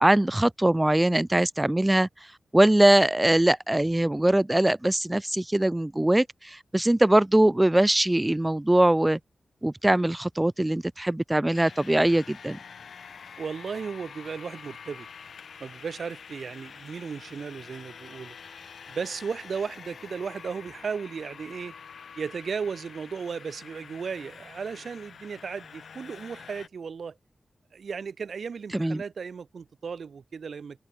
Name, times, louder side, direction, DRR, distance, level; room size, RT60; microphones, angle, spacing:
voice 1, 0.0-2.1 2.5-9.2 9.6-12.6 28.7-29.0, right 1 dB, 10° right, 0.5 m, -22 dB
sound 1, 11.5-26.7, left 6 dB, 80° left, 2.6 m, -46 dB
voice 2, 13.4-15.1 15.6-18.4 18.9-21.7 22.2-27.2 27.7-30.8, right 6 dB, 65° right, 2.7 m, -35 dB
wide cardioid pair, 145°, 0 cm